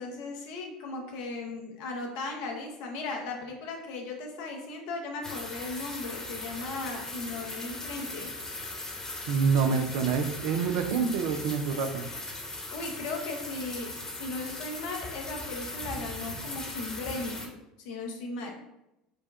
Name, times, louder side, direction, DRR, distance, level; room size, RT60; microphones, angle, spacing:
voice 1, 0.0-8.3 12.7-17.5 17.8-18.5, left 3 dB, 65° left, 1 dB, 0.9 m, -37 dB
sound 1, 5.2-17.5, left 2 dB, 15° left, 1.1 m, -39 dB
voice 2, 9.3-12.0, right 6 dB, 60° right, 7 dB, 0.5 m, -27 dB
5.1 x 2.3 x 3.4 m, 0.91 s
hypercardioid pair, 70°, 3 cm